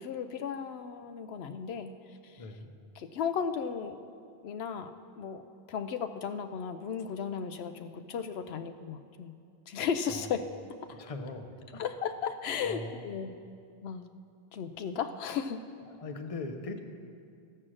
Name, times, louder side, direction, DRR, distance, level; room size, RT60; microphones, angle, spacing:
voice 1, 0.0-1.9 2.2-2.4 3.0-4.0 4.4-4.9 5.2-5.4 5.7-9.4 9.7-10.4 10.9-11.0 11.8-13.4 13.8-14.0 14.5-15.6, left 7 dB, 80° left, 8 dB, 0.8 m, -35 dB
voice 2, 2.4-2.7 10.1-10.3 10.9-11.8 12.6-13.1 15.9-16.8, left 3 dB, 35° left, 6 dB, 0.8 m, -40 dB
13.5 x 7.4 x 6.3 m, 2.3 s
omnidirectional pair, 1.1 m